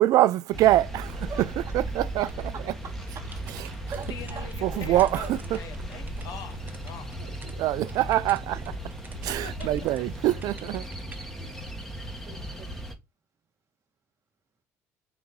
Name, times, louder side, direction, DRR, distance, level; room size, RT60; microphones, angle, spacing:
voice 1, 0.0-1.5 1.7-2.3 2.7-2.8 3.6-3.8 4.6-5.6 7.6-8.6 9.2-10.9, right 14 dB, 70° right, 0.4 m, -24 dB
sound 1, 0.5-12.9, right 1 dB, 5° left, 1.2 m, -36 dB
sound 2, 2.3-7.6 7.9-10.0 10.4-11.2, right 4 dB, 25° right, 0.8 m, -51 dB
voice 2, 2.5-3.3 3.9-5.1 9.2-9.3 11.3-11.6 12.3-12.8, right 7 dB, 50° right, 1.3 m, -42 dB
voice 3, 4.1-7.4 9.3-9.7, left 7 dB, 60° left, 0.8 m, -43 dB
3.8 x 3.0 x 3.6 m
supercardioid pair, 75°, 7 cm